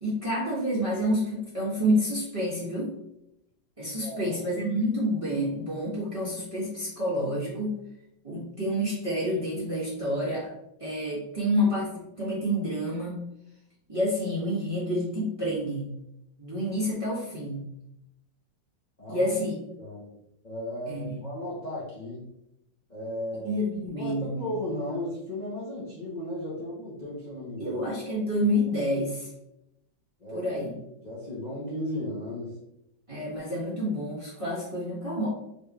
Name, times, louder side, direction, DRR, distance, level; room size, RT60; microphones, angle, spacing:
voice 1, 0.0-2.9 3.8-7.8 8.2-10.5 10.8-13.2 13.9-15.9 16.4-17.7 19.1-19.6 20.9-21.2 23.4-24.4 27.6-29.3 30.3-30.7 33.1-35.3, equal, 20° right, -9 dB, 1.0 m, -28 dB
voice 2, 4.0-4.4 19.0-19.3 19.8-20.1 20.4-22.2 22.9-23.7 23.9-27.8 30.2-30.5 31.0-32.5, left 1 dB, 35° left, -8 dB, 0.6 m, -35 dB
4.0 x 3.3 x 2.4 m, 0.84 s
omnidirectional pair, 2.1 m